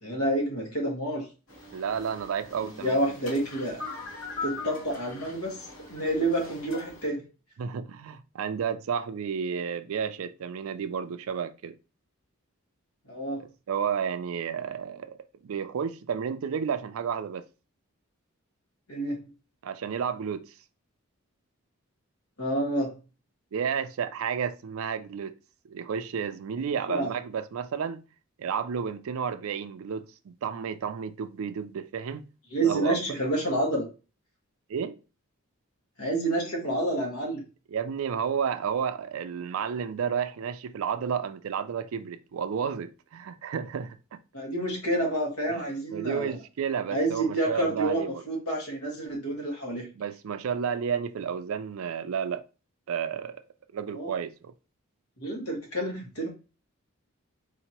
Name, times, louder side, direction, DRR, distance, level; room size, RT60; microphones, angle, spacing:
voice 1, 0.0-1.3 2.8-3.8 4.4-7.2 13.1-13.4 18.9-19.3 22.4-23.0 26.9-27.1 32.5-33.9 36.0-37.4 44.3-46.4 46.9-49.9 53.9-54.1 55.2-56.3, right 1 dB, 90° left, 1.6 m, -29 dB
sound 1, 1.5-7.1, left 3 dB, 70° left, 2.3 m, -41 dB
voice 2, 1.7-3.0 7.6-11.8 13.4-15.2 15.4-17.4 19.6-20.5 23.5-25.4 25.6-28.0 28.4-32.2 32.6-33.2 34.7-35.0 37.7-44.2 45.6-45.7 45.9-48.2 50.0-52.4 52.9-53.4 53.7-54.5, right 7 dB, 70° right, 0.4 m, -31 dB
4.2 x 2.8 x 2.9 m
head